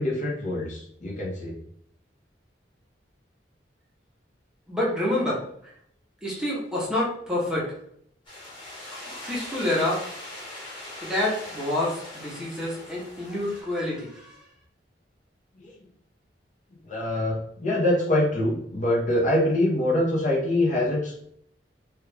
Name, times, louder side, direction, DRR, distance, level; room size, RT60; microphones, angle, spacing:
voice 1, 0.0-1.5 15.6-15.7 16.9-21.2, left 1 dB, 45° left, -3 dB, 0.9 m, -24 dB
voice 2, 4.7-5.4 6.2-7.7 9.3-10.0 11.0-14.4, left 1 dB, 5° right, -6 dB, 0.8 m, -27 dB
sound 1, 8.2-13.6, left 1 dB, 30° left, 1.3 m, -41 dB
3.1 x 2.4 x 3.3 m, 0.69 s
head